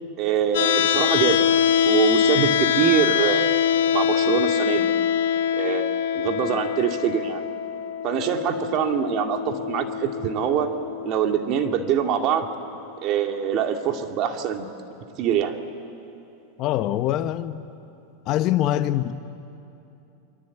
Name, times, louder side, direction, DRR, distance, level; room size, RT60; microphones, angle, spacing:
voice 1, 0.2-1.4 1.9-4.9 5.5-7.4 8.0-10.7 11.0-12.5 13.0-14.7 15.2-15.6, right 8 dB, 45° right, 2.3 m, -24 dB
sound 1, 0.5-12.6, left 9 dB, 80° left, 1.2 m, -24 dB
voice 2, 16.6-17.6 18.2-19.2, left 12 dB, 45° left, 1.0 m, -24 dB
29.0 x 23.0 x 8.6 m
supercardioid pair, 130°, 0 cm